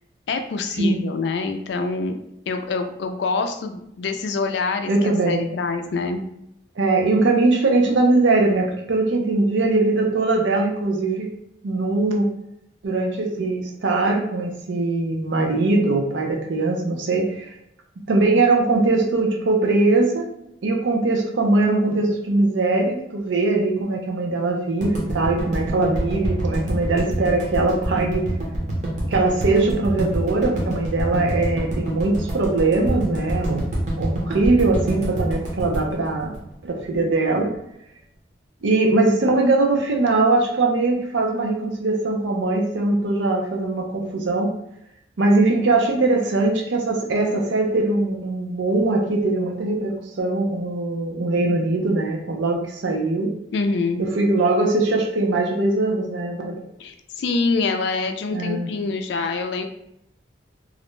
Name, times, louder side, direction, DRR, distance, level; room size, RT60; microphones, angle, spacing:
voice 1, 0.3-2.1 2.5-6.2 53.5-54.1 56.8-59.7, left 4 dB, 65° left, 6 dB, 0.3 m, -25 dB
voice 2, 4.9-5.5 6.8-11.3 11.6-12.3 12.8-17.5 18.1-20.3 20.6-28.3 29.1-33.6 34.0-36.3 36.6-37.5 38.6-44.5 45.2-53.3 54.0-56.6 58.3-58.7, right 2 dB, 75° right, 2 dB, 0.5 m, -21 dB
sound 1, 24.8-37.0, right 1 dB, 40° right, 0.7 m, -26 dB
2.4 x 2.1 x 3.0 m, 0.78 s
head